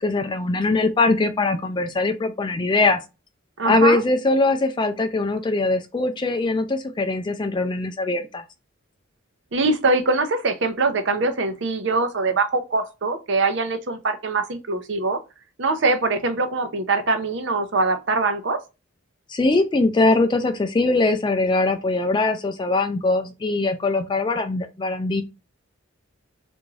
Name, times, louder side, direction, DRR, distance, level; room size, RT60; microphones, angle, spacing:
voice 1, 0.0-3.0 3.6-8.4 19.3-25.2, left 2 dB, 20° left, 0.3 m, -21 dB
voice 2, 3.6-4.0 9.5-15.2 15.6-18.6, right 3 dB, 60° right, 0.6 m, -23 dB
3.5 x 2.6 x 3.1 m
head